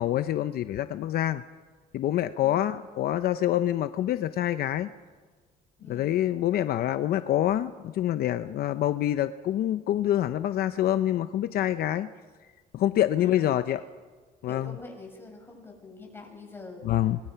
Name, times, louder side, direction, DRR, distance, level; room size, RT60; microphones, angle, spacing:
voice 1, 0.0-1.4 1.9-4.9 5.9-12.1 12.7-13.8 14.4-14.7 16.8-17.2, left 12 dB, 65° left, 11 dB, 0.7 m, -26 dB
voice 2, 2.4-2.7 5.8-6.1 13.2-13.8 14.5-17.0, left 3 dB, 15° left, 1 dB, 7.3 m, -44 dB
26.0 x 22.0 x 5.8 m, 1.5 s
cardioid pair, 110°, 17 cm